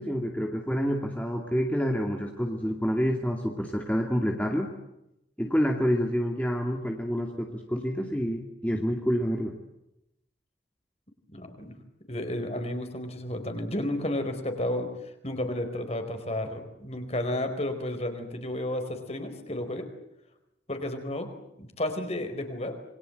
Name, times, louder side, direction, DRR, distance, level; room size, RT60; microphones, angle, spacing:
voice 1, 0.0-4.7 5.4-9.6, equal, 10° left, 1 dB, 2.4 m, -28 dB
voice 2, 11.3-11.7 12.1-14.9 15.2-19.9 20.7-21.3 21.6-22.8, left 1 dB, 35° left, 7 dB, 4.5 m, -32 dB
28.0 x 23.0 x 8.0 m, 0.86 s
head